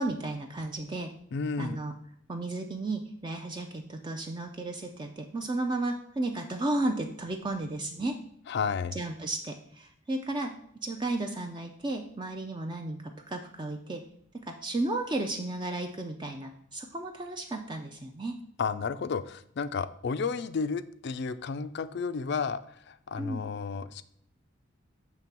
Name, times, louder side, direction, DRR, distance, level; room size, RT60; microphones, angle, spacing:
voice 1, 0.0-1.1 1.6-1.9 2.3-8.1 9.0-10.5 10.8-14.0 14.4-18.3 23.2-23.4, right 2 dB, 20° right, 4 dB, 0.4 m, -33 dB
voice 2, 1.3-1.8 8.5-9.0 18.6-24.0, left 5 dB, 55° left, 13 dB, 0.4 m, -32 dB
6.9 x 3.3 x 5.9 m, 0.71 s
head